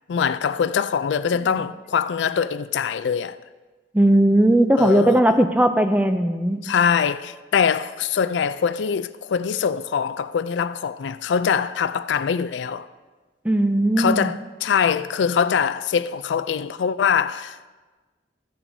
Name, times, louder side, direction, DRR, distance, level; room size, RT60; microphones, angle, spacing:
voice 1, 0.1-3.4 4.8-5.2 6.6-12.9 14.0-17.7, left 7 dB, 80° left, 0.4 m, -23 dB
voice 2, 3.9-6.6 13.4-14.3, right 1 dB, 10° right, 0.4 m, -18 dB
15.5 x 8.8 x 2.7 m
head